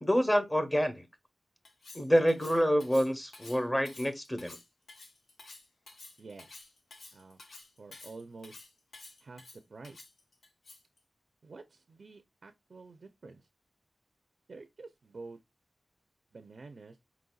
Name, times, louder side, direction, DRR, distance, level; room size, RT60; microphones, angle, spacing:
voice 1, 0.0-1.1 1.9-4.6, equal, 15° left, 0.9 m, -27 dB
Cutlery silverware, 1.7-11.0, left 2 dB, 90° left, 0.9 m, -51 dB
voice 2, 6.2-6.5 7.1-7.4 7.8-8.6 9.2-9.4 9.7-10.0 11.4-13.5 14.5-15.4 16.3-17.0, right 3 dB, 70° right, 0.5 m, -49 dB
4.4 x 4.0 x 2.3 m
wide cardioid pair, 60°, 0 cm